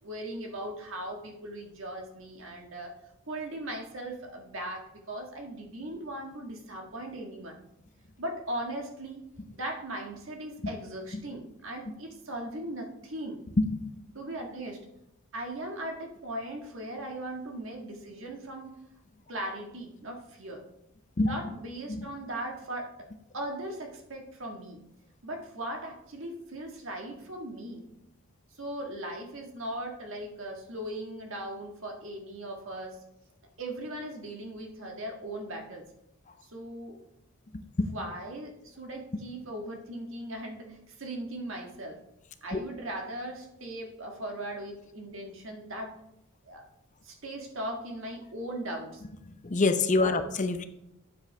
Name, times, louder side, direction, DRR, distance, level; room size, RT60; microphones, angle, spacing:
voice 1, 0.0-3.0 3.3-7.6 8.2-9.2 9.5-13.4 14.1-14.8 15.3-18.8 19.3-20.6 21.2-23.1 23.3-24.8 25.2-27.8 28.6-33.0 33.6-35.9 36.4-37.0 37.9-42.0 42.4-46.0 46.5-46.6 47.0-49.0 49.9-50.2, right 1 dB, 65° right, 2 dB, 1.6 m, -38 dB
voice 2, 49.4-50.7, left 3 dB, 35° left, 9 dB, 0.7 m, -25 dB
9.0 x 7.6 x 3.3 m, 0.84 s
head